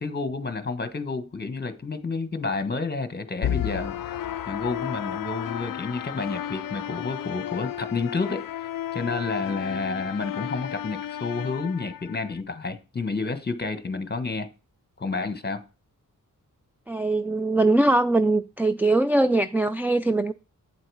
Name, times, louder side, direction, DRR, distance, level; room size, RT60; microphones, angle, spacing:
voice 1, 0.0-8.5 8.9-14.5 15.0-15.6, left 4 dB, 30° left, 1.3 m, -30 dB
sound 1, 3.4-12.4, left 11 dB, 75° left, 0.5 m, -33 dB
voice 2, 16.9-20.3, right 2 dB, 5° right, 0.4 m, -21 dB
8.8 x 7.7 x 4.8 m
wide cardioid pair, 105°, 34 cm